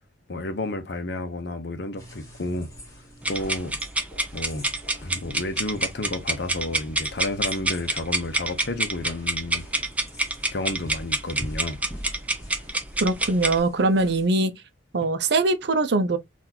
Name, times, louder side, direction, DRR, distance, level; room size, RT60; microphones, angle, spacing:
voice 1, 0.3-2.7 3.3-3.8 4.3-4.7 5.0-9.6 10.5-11.8, left 2 dB, 60° left, 0.7 m, -31 dB
sound 1, 2.0-14.3, equal, 20° left, 1.6 m, -44 dB
sound 2, 3.2-13.6, right 2 dB, 10° right, 0.5 m, -27 dB
voice 2, 13.0-14.5 14.9-16.2, right 2 dB, 60° right, 0.6 m, -22 dB
3.9 x 2.5 x 2.8 m
head